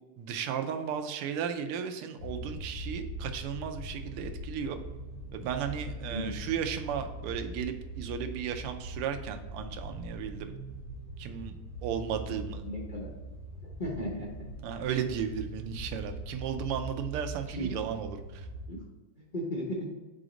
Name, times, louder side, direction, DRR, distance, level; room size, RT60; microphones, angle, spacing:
voice 1, 0.2-4.8 5.3-10.5 11.2-11.5 11.8-12.6 14.6-18.5, right 8 dB, 90° right, 7 dB, 1.6 m, -35 dB
sound 1, 2.2-18.7, right 1 dB, 45° left, 2.3 m, -41 dB
voice 2, 12.6-13.1 13.8-14.5 17.5-17.8 18.7-18.8 19.3-19.9, equal, 80° left, -4 dB, 0.4 m, -35 dB
5.0 x 3.9 x 4.9 m, 1.2 s
omnidirectional pair, 2.4 m